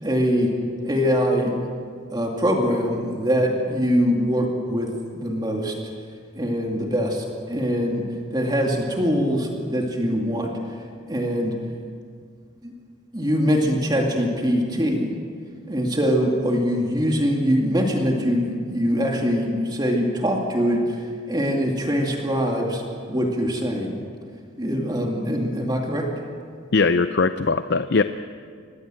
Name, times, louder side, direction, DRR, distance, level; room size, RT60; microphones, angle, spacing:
voice 1, 0.0-0.5 0.8-1.5 2.1-5.7 6.4-8.0 8.3-10.5 11.1-11.6 12.6-12.7 13.1-15.1 15.7-21.0 21.3-22.8 23.1-24.0 24.6-26.1, equal, 20° right, 0 dB, 2.4 m, -23 dB
voice 2, 26.7-28.0, left 4 dB, 55° left, 10 dB, 0.6 m, -20 dB
24.5 x 19.0 x 7.8 m, 2.1 s
head